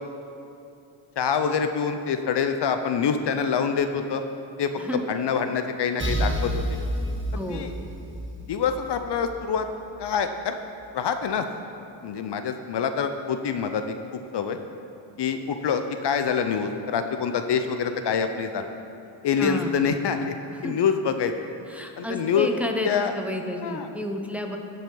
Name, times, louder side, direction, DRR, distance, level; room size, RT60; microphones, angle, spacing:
voice 1, 1.2-4.2 4.6-4.7 5.1-6.8 7.5-7.7 8.5-9.7 10.0-10.6 10.9-11.4 12.0-14.6 15.2-18.7 19.2-20.3 20.6-21.3 22.0-22.5 22.8-23.1 23.6-23.9, left 6 dB, 55° left, 8 dB, 0.6 m, -26 dB
sound 1, 6.0-9.7, right 1 dB, 25° right, 1.4 m, -30 dB
voice 2, 7.3-7.7 19.4-19.8 20.6-20.8 21.7-24.6, left 1 dB, 5° right, 3 dB, 0.7 m, -31 dB
15.5 x 5.4 x 3.8 m, 2.7 s
cardioid pair, 90°, 49 cm